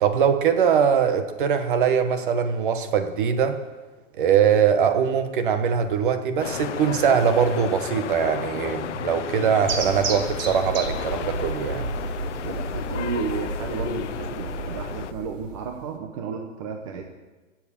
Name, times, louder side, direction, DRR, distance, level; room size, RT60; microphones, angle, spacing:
voice 1, 0.0-3.6 4.2-11.8, right 7 dB, 40° right, 8 dB, 1.3 m, -22 dB
sound 1, 6.4-15.1, left 10 dB, 65° left, 0.8 m, -33 dB
sound 2, 9.7-16.0, right 3 dB, 80° right, 2.9 m, -32 dB
voice 2, 12.4-17.1, right 5 dB, 25° right, 3 dB, 0.9 m, -33 dB
16.0 x 7.4 x 8.7 m, 1.2 s
hypercardioid pair, 175°, 39 cm